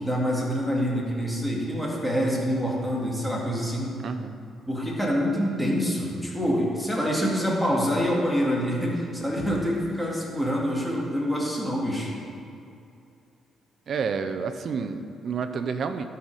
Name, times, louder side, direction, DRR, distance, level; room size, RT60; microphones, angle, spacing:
voice 1, 0.0-4.0 4.7-12.1, equal, 5° left, -4 dB, 2.3 m, -26 dB
voice 2, 4.0-4.4 13.9-16.1, right 5 dB, 55° right, 9 dB, 0.6 m, -29 dB
13.0 x 5.7 x 4.9 m, 2.5 s
cardioid pair, 90°, 0 cm